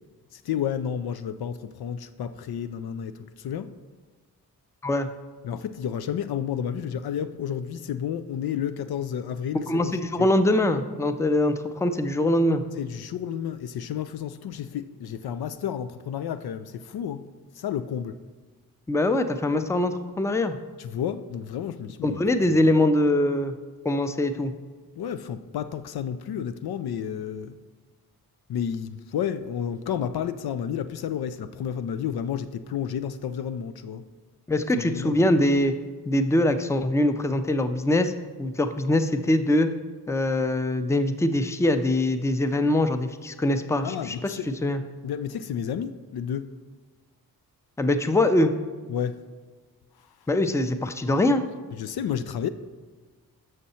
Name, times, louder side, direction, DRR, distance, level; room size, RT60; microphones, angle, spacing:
voice 1, 0.3-3.7 5.4-10.3 12.8-17.3 17.5-18.2 20.8-22.2 22.5-22.6 25.0-27.6 28.5-34.0 34.8-35.2 43.8-44.5 45.0-46.5 48.9-49.2 51.7-52.5, left 8 dB, 75° left, 12 dB, 0.5 m, -31 dB
voice 2, 9.7-12.6 18.9-20.6 22.0-23.5 23.8-24.5 34.5-35.7 36.1-38.1 38.4-39.7 40.1-44.3 44.6-44.8 47.8-48.5 50.3-51.4, left 1 dB, 10° left, 9 dB, 0.5 m, -23 dB
6.7 x 6.3 x 4.2 m, 1.4 s
cardioid pair, 70°, 38 cm